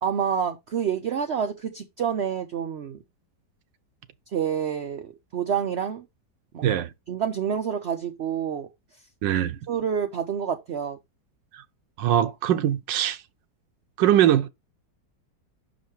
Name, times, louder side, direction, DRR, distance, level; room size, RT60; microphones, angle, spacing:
voice 1, 0.0-3.0 4.3-6.0 6.5-8.7 9.7-11.0, right 8 dB, 70° right, 0.6 m, -28 dB
voice 2, 6.6-6.9 9.2-9.6 11.5-11.6 12.0-13.2 14.0-14.5, right 11 dB, 85° right, 1.4 m, -22 dB
5.9 x 5.1 x 4.4 m
omnidirectional pair, 1.9 m